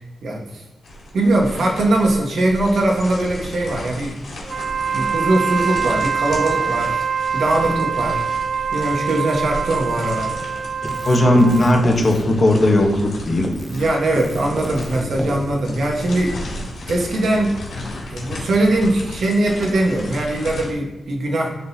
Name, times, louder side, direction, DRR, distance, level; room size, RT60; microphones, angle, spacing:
voice 1, 0.2-0.6 1.1-4.2 4.9-8.3 8.7-10.3 13.7-16.4 16.9-17.5 18.1-21.5, right 1 dB, 70° right, 0 dB, 1.3 m, -21 dB
sound 1, 0.8-20.7, left 1 dB, 75° left, 2.2 m, -34 dB
Wind instrument woodwind instrument, 4.4-11.9, right 6 dB, 45° right, 0.3 m, -24 dB
Keyboard (musical), 10.8-13.1 13.4-16.2, equal, 5° left, 0.6 m, -32 dB
voice 2, 11.0-13.5, left 1 dB, 35° left, 2 dB, 1.0 m, -16 dB
11.0 x 3.9 x 2.7 m, 1.0 s
wide cardioid pair, 130°, 0 cm